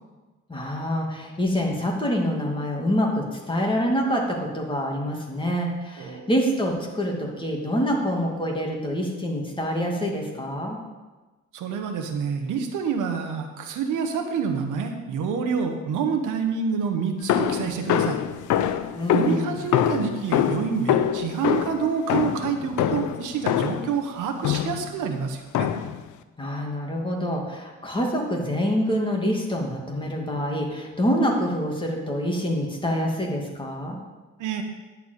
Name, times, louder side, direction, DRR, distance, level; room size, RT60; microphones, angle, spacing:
voice 1, 0.5-10.8 19.0-19.6 26.4-34.0, equal, 15° left, -1 dB, 2.4 m, -26 dB
voice 2, 6.0-6.3 11.5-18.2 19.1-25.7 34.4-34.6, right 6 dB, 85° right, 5 dB, 1.3 m, -27 dB
sound 1, 17.3-23.9 24.4-24.9 25.5-26.0, left 10 dB, 75° left, 0.7 m, -24 dB
10.5 x 4.7 x 8.2 m, 1.2 s
cardioid pair, 90°, 30 cm